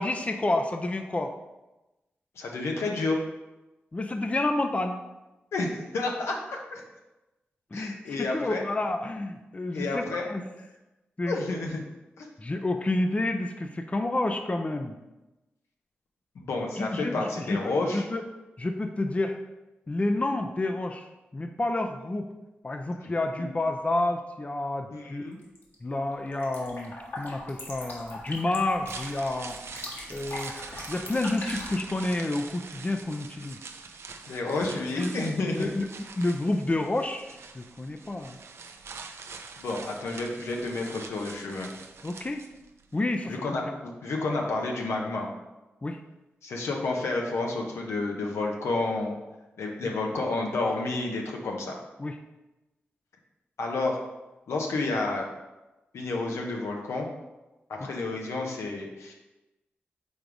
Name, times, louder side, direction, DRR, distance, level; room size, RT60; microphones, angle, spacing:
voice 1, 0.0-1.4 3.9-5.0 7.7-10.4 11.2-11.4 12.4-15.0 16.8-18.2 18.6-19.4 19.9-22.3 22.6-25.3 25.8-29.6 30.1-30.6 30.9-33.6 34.9-35.1 35.5-35.9 36.2-38.4 42.0-42.4 42.9-43.6 45.8-46.0 52.0-52.2 57.8-57.9, left 2 dB, 30° left, 5 dB, 0.5 m, -29 dB
voice 2, 2.4-3.2 5.5-6.8 7.7-8.6 9.7-10.3 11.3-11.8 12.2-12.3 16.3-18.0 24.9-25.4 34.3-35.7 39.6-41.7 43.3-45.3 46.4-49.1 49.6-51.8 53.6-54.0 54.5-55.3 55.9-57.1 57.7-59.1, left 3 dB, 85° left, 1 dB, 0.9 m, -30 dB
sound 1, 25.4-25.8 26.1-31.8, left 1 dB, 60° left, 1.7 m, -41 dB
sound 2, 28.7-42.8 43.1-43.2, right 5 dB, 75° right, 0.5 m, -44 dB
5.3 x 3.9 x 4.7 m, 1.0 s
cardioid pair, 50°, 4 cm